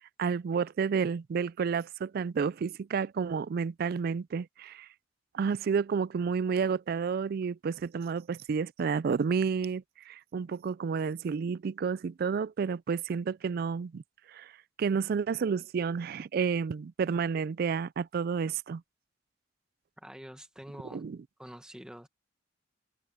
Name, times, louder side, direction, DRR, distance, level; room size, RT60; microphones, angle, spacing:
voice 1, 0.2-4.9 5.3-14.0 14.3-14.5 14.8-18.8 20.9-21.2, right 6 dB, 50° right, 0.3 m, -30 dB
voice 2, 20.0-21.0 21.4-22.1, equal, 5° right, 1.0 m, -46 dB
head